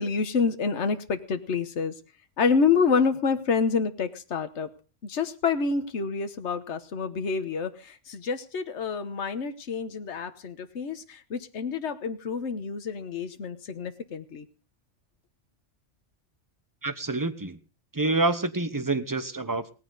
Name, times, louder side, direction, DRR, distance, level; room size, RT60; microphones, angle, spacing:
voice 1, 0.0-1.9 2.4-4.7 5.0-14.4, left 5 dB, 70° left, 9 dB, 1.4 m, -28 dB
voice 2, 16.8-17.6 17.9-19.7, right 2 dB, 20° right, 11 dB, 1.0 m, -27 dB
18.0 x 14.5 x 4.0 m, 0.34 s
omnidirectional pair, 1.2 m